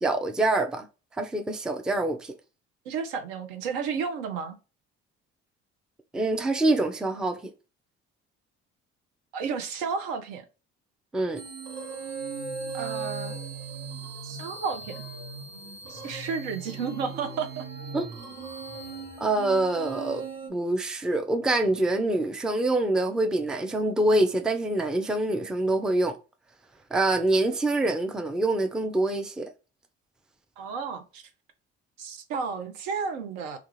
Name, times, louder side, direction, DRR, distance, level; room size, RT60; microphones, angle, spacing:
voice 1, 0.0-0.9 1.2-2.3 6.1-7.5 11.1-11.4 17.9-18.1 19.2-20.2 20.5-26.2 26.9-29.5, right 2 dB, ahead, 0.4 m, -25 dB
voice 2, 2.9-4.6 9.3-10.4 12.7-13.4 14.2-15.0 15.9-17.6 30.6-31.2 32.0-33.6, right 5 dB, 70° right, 0.7 m, -32 dB
sound 1, 11.4-20.5, right 4 dB, 50° right, 1.1 m, -38 dB
2.4 x 2.3 x 3.0 m
hypercardioid pair, 55°, 34 cm